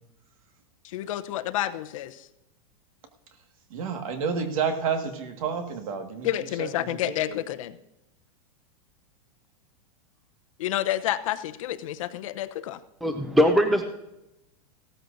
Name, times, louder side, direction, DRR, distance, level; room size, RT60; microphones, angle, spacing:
voice 1, 0.8-2.3 6.2-7.8 10.6-12.8, left 13 dB, 60° left, 12 dB, 0.7 m, -29 dB
voice 2, 3.7-6.3 6.6-6.7 7.0-7.1, right 6 dB, 60° right, 5 dB, 1.8 m, -29 dB
voice 3, 13.0-13.8, equal, ahead, 6 dB, 0.4 m, -21 dB
16.5 x 13.5 x 2.7 m, 0.91 s
supercardioid pair, 170°, 19 cm